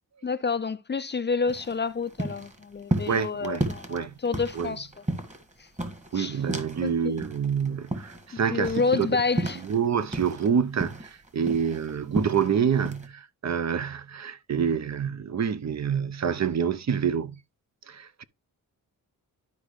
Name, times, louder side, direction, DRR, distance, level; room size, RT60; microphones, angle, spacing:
voice 1, 0.2-4.9 6.1-6.4 6.8-7.2 8.5-9.6, left 4 dB, 30° left, 0.5 m, -28 dB
sound 1, 1.5-6.9 7.2-10.5 10.8-12.5 12.8-13.1, right 1 dB, 20° right, 1.7 m, -33 dB
voice 2, 3.1-4.1 4.6-4.7 6.1-9.1 9.6-17.4 17.9-18.2, right 7 dB, 50° right, 0.7 m, -27 dB
12.0 x 5.1 x 3.1 m
wide cardioid pair, 115°, 36 cm